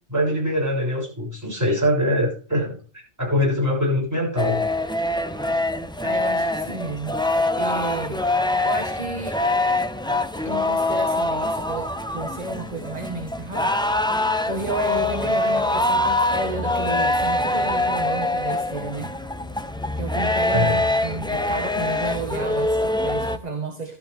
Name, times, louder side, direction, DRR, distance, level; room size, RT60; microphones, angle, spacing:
voice 1, 0.1-2.8 3.2-4.6 20.5-20.8, left 1 dB, 15° right, -3 dB, 7.2 m, -23 dB
sound 1, 4.4-23.4, left 2 dB, 5° left, 0.5 m, -24 dB
voice 2, 6.0-8.3 8.6-9.4 10.3-14.1 14.5-19.1 20.0-24.0, right 2 dB, 35° right, 4 dB, 1.6 m, -32 dB
13.5 x 12.5 x 3.5 m, 0.40 s
omnidirectional pair, 1.2 m